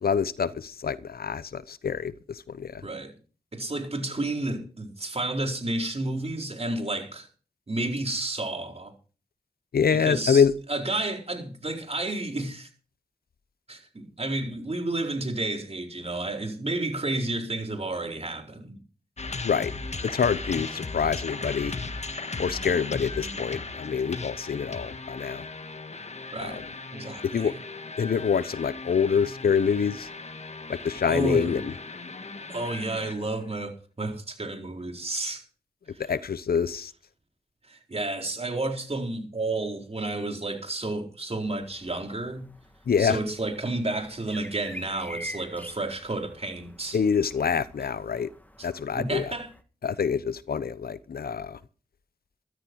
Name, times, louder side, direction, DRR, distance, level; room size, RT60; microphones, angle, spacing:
voice 1, 0.0-2.9 9.7-10.5 19.4-19.7 20.0-21.7 22.4-25.5 26.4-26.6 27.2-27.6 28.0-30.1 30.7-31.7 36.0-36.9 42.9-43.2 46.9-48.3 48.6-49.3 49.8-51.6, left 6 dB, 75° left, 0.8 m, -26 dB
voice 2, 2.8-3.1 3.5-7.3 7.7-8.9 9.9-10.4 10.7-12.7 13.7-18.8 26.3-26.6 26.9-27.5 31.1-31.6 32.5-35.4 35.9-36.0 37.7-42.5 43.0-47.0 48.6-48.7 48.9-49.5, right 2 dB, 40° right, 4.3 m, -31 dB
sound 1, 19.2-33.5, left 3 dB, 45° left, 1.6 m, -37 dB
sound 2, 41.4-49.6, equal, 10° left, 2.1 m, -46 dB
14.0 x 13.5 x 4.7 m
cardioid pair, 45°, 16 cm